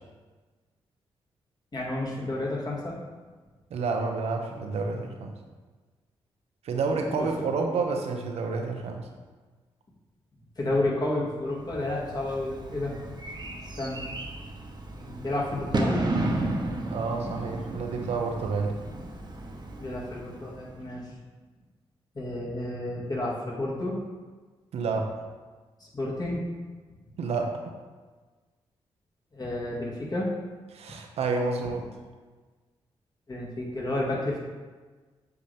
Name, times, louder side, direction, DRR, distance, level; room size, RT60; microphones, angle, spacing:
voice 1, 1.7-3.0 6.9-7.3 10.6-13.0 13.8-14.0 14.9-16.0 19.8-21.1 22.2-24.0 25.8-26.4 29.3-30.3 33.3-34.4, left 1 dB, 40° left, -4 dB, 2.0 m, -31 dB
voice 2, 3.7-5.3 6.6-9.1 16.9-18.7 24.7-25.1 27.2-27.7 30.7-31.9, right 4 dB, 80° right, 3 dB, 0.8 m, -29 dB
Bird / Fireworks, 11.7-20.9, right 2 dB, 45° right, 1.0 m, -33 dB
7.9 x 4.0 x 3.5 m, 1.4 s
cardioid pair, 60°, 11 cm